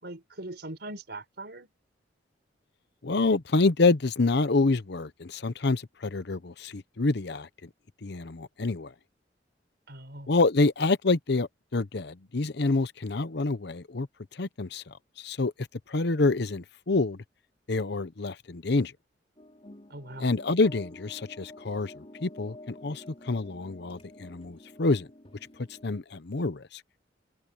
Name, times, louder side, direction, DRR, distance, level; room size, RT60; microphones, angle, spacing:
voice 1, 0.0-1.7 9.9-10.3 19.9-20.3, right 2 dB, 65° right, 5.3 m, -41 dB
voice 2, 3.0-7.5 8.0-8.9 10.3-14.1 14.3-17.2 17.7-18.9 20.2-25.1 25.8-26.8, left 3 dB, 65° left, 0.8 m, -27 dB
sound 1, 19.4-26.0, left 1 dB, 35° left, 3.7 m, -49 dB
open air
head